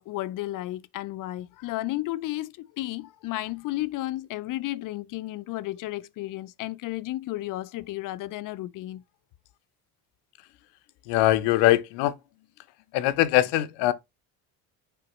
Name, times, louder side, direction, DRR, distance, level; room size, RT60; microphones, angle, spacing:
voice 1, 0.0-9.0, left 16 dB, 50° left, 0.5 m, -33 dB
voice 2, 11.1-12.2 12.9-13.9, left 15 dB, 80° left, 0.9 m, -22 dB
6.8 x 4.9 x 3.0 m
cardioid pair, 120°, 41 cm